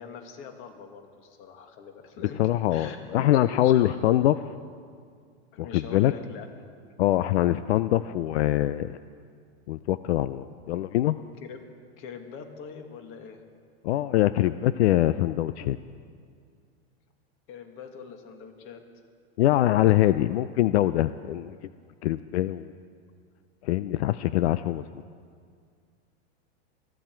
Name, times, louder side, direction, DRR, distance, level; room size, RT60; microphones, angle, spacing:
voice 1, 0.0-2.4 2.7-4.2 5.5-6.5 11.4-11.6 12.0-13.4 15.6-15.8 17.5-18.8, left 6 dB, 40° left, 5 dB, 1.8 m, -42 dB
voice 2, 2.4-4.3 5.6-6.1 7.0-8.9 9.7-11.2 13.8-15.8 19.4-21.5 22.0-22.7 23.6-24.9, left 14 dB, 80° left, 14 dB, 0.5 m, -23 dB
22.0 x 13.5 x 4.5 m, 2.1 s
supercardioid pair, 140°, 32 cm